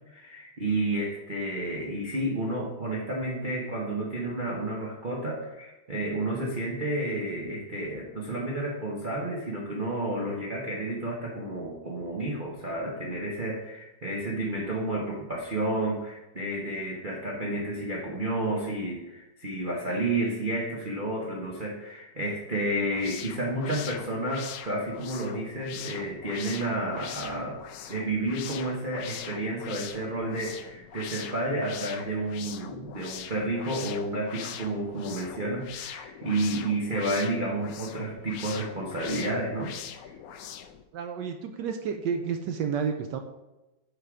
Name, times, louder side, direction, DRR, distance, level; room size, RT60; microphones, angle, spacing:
voice 1, 0.1-27.6 27.9-40.1, right 1 dB, 35° right, -4 dB, 0.9 m, -31 dB
sound 1, 22.8-40.8, left 9 dB, 75° left, 0.8 m, -42 dB
voice 2, 40.9-43.2, right 6 dB, 75° right, 6 dB, 1.1 m, -30 dB
6.7 x 5.5 x 4.8 m, 1.0 s
omnidirectional pair, 2.1 m